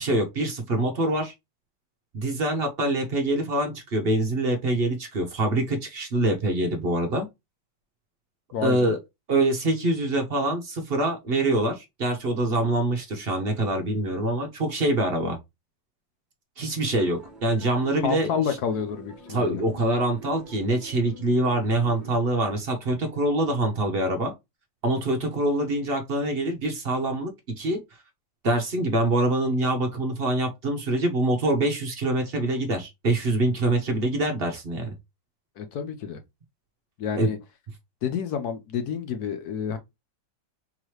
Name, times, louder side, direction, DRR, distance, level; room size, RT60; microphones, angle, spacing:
voice 1, 0.0-1.3 2.1-7.3 8.6-9.0 9.3-15.4 16.6-18.6 19.3-24.3 24.8-27.8 28.4-34.9 37.1-37.3, right 1 dB, 55° right, 0.6 m, -25 dB
voice 2, 8.5-8.9 18.0-19.6 35.6-36.2 37.0-37.4 38.0-39.8, left 7 dB, 65° left, 1.1 m, -29 dB
sound 1, 16.9-22.2, right 1 dB, ahead, 0.5 m, -45 dB
3.9 x 3.0 x 3.0 m
omnidirectional pair, 2.0 m